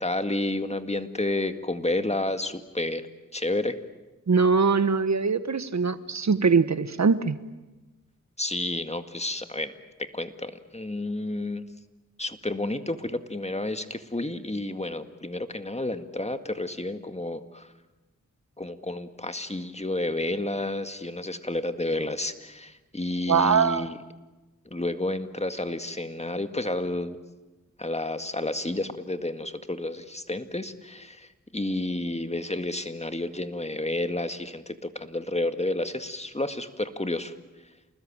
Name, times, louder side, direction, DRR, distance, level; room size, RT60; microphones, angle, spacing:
voice 1, 0.0-3.1 3.3-3.8 8.4-9.7 10.0-11.6 12.2-17.7 18.6-24.0 24.7-27.2 27.8-37.3, left 2 dB, 20° left, 8 dB, 2.0 m, -30 dB
voice 2, 4.3-7.4 23.3-23.9, right 5 dB, 55° right, 13 dB, 1.2 m, -22 dB
28.5 x 20.0 x 8.9 m, 1.1 s
cardioid pair, 45°, 33 cm